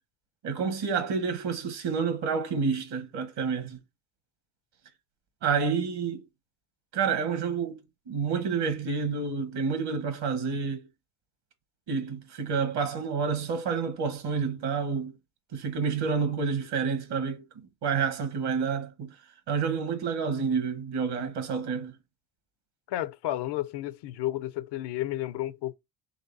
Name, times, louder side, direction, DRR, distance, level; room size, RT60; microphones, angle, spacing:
voice 1, 0.4-3.8 5.4-6.2 6.9-7.8 8.1-10.9 11.9-15.1 15.5-19.1 19.5-21.9, right 5 dB, 65° right, 1.4 m, -29 dB
voice 2, 22.9-25.7, left 14 dB, 65° left, 0.6 m, -32 dB
4.0 x 3.2 x 4.0 m
supercardioid pair, 75°, 44 cm